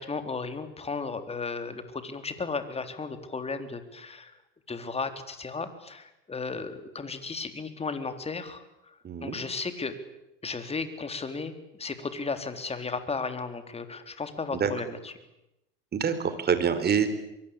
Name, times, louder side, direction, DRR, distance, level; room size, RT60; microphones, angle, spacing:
voice 1, 0.0-4.4 4.7-10.0 10.4-15.1, left 4 dB, 20° left, 9 dB, 3.8 m, -35 dB
voice 2, 9.0-9.4 14.5-14.7 15.9-17.1, right 7 dB, 35° right, 11 dB, 4.2 m, -26 dB
24.0 x 23.5 x 8.6 m, 0.88 s
hypercardioid pair, 85°, 30 cm